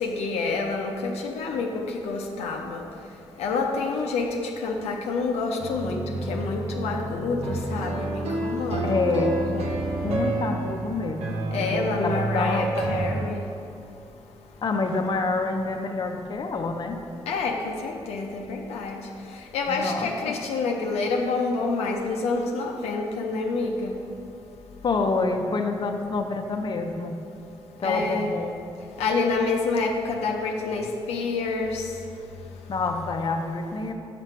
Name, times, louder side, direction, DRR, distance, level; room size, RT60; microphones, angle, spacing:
voice 1, 0.0-1.7 2.0-2.8 3.4-6.0 6.3-9.6 11.5-13.4 17.3-18.9 19.5-23.9 27.8-28.3 29.0-31.8, left 3 dB, 80° left, 1 dB, 0.6 m, -27 dB
sound 1, 5.6-13.3, right 2 dB, 80° right, 0.7 m, -29 dB
voice 2, 8.8-9.4 9.9-12.8 14.6-17.0 19.7-20.3 24.8-27.2 27.8-28.5 32.7-33.9, left 3 dB, 45° left, 4 dB, 0.6 m, -27 dB
5.9 x 5.8 x 4.5 m, 2.6 s
supercardioid pair, 55°, 10 cm